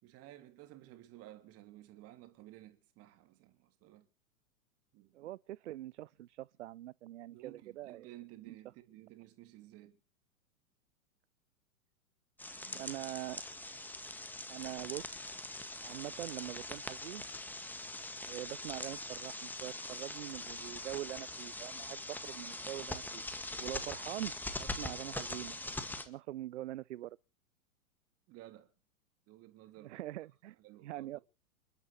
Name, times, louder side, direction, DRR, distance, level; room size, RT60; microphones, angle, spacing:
voice 1, 0.0-4.1 4.9-5.3 7.3-10.0 12.5-12.9 28.3-28.7 29.3-30.0 30.6-31.2, right 15 dB, 35° right, 3.0 m, -55 dB
voice 2, 5.1-8.1 8.5-8.6 12.7-13.4 14.5-15.2 15.8-17.3 18.3-23.2 23.6-24.3 24.6-25.6 26.0-27.2 29.8-30.6 30.8-31.2, right 14 dB, 55° right, 0.7 m, -43 dB
sound 1, 12.4-26.0, left 2 dB, 5° left, 1.9 m, -42 dB
29.0 x 12.0 x 3.2 m
figure-of-eight pair, 100°, 43 cm